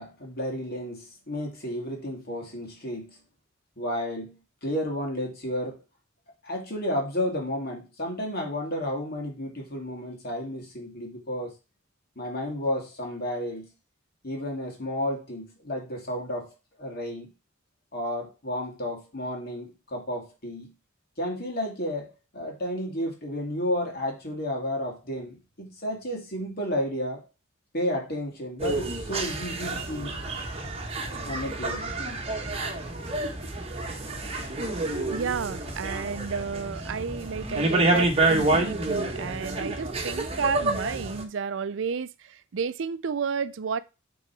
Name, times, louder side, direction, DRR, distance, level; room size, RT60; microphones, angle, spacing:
voice 1, 0.0-3.2 3.8-4.4 4.6-5.8 6.4-11.5 12.2-13.7 14.2-16.5 16.8-17.3 17.9-20.7 21.2-27.2 27.7-30.1 31.2-31.9, left 1 dB, 50° left, 2.5 m, -32 dB
sound 1, 28.6-41.2, right 2 dB, 30° right, 1.2 m, -28 dB
voice 2, 35.1-43.8, right 5 dB, 65° right, 0.5 m, -31 dB
7.6 x 3.9 x 4.6 m
head